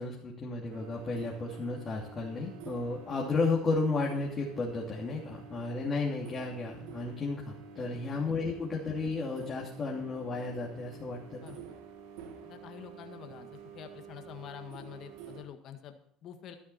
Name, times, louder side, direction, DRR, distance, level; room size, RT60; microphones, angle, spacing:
voice 1, 0.0-11.4, left 3 dB, 35° left, -3 dB, 3.0 m, -33 dB
sound 1, 0.7-15.4, right 6 dB, 80° right, 2.1 m, -49 dB
voice 2, 12.4-13.5 13.7-16.6, left 9 dB, 55° left, 6 dB, 1.8 m, -47 dB
12.5 x 12.5 x 4.4 m, 0.65 s
supercardioid pair, 90°, 0 cm